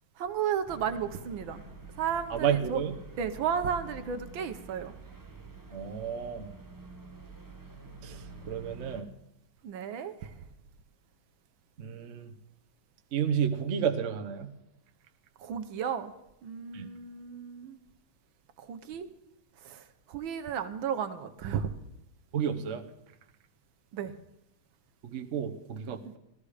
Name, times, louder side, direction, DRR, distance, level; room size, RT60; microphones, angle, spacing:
voice 1, 0.2-1.6 2.0-2.8 3.2-4.9 9.6-10.3 15.4-16.1 16.4-17.8 18.6-19.1 19.6-19.8 20.1-21.7 23.9-24.1, right 8 dB, 75° right, 9 dB, 1.6 m, -33 dB
sound 1, 0.7-9.0, right 3 dB, 15° right, 0.9 m, -47 dB
voice 2, 2.3-2.9 5.7-6.5 8.0-9.1 11.8-12.3 13.1-14.5 16.7-16.9 22.3-22.8 25.0-26.2, right 8 dB, 45° right, 4 dB, 1.0 m, -31 dB
14.0 x 14.0 x 4.9 m, 0.86 s
omnidirectional pair, 2.2 m